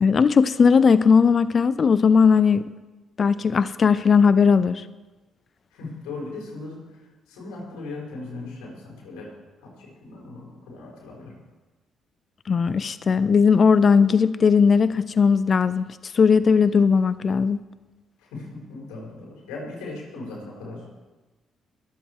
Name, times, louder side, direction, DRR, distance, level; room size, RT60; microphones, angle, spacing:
voice 1, 0.0-2.7 3.2-4.8 12.5-15.9 16.1-17.6, left 5 dB, 50° left, 16 dB, 0.5 m, -18 dB
voice 2, 5.7-6.8 7.3-9.3 9.6-11.4 18.2-20.9, left 3 dB, 90° left, -2 dB, 4.9 m, -38 dB
21.5 x 8.1 x 4.7 m, 1.2 s
supercardioid pair, 60°, 0 cm